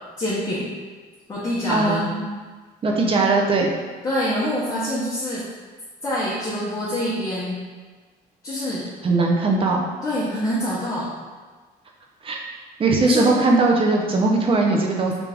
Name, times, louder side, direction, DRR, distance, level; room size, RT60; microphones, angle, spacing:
voice 1, 0.2-0.7 1.3-2.1 4.0-5.4 6.0-7.6 8.4-8.9 10.0-11.1 13.0-13.3, equal, 20° left, -8 dB, 0.8 m, -25 dB
voice 2, 1.7-2.2 2.8-3.7 9.0-9.8 12.2-12.4 12.8-15.1, right 3 dB, 30° right, 0 dB, 0.6 m, -19 dB
3.4 x 2.4 x 3.3 m, 1.4 s
cardioid pair, 110°, 17 cm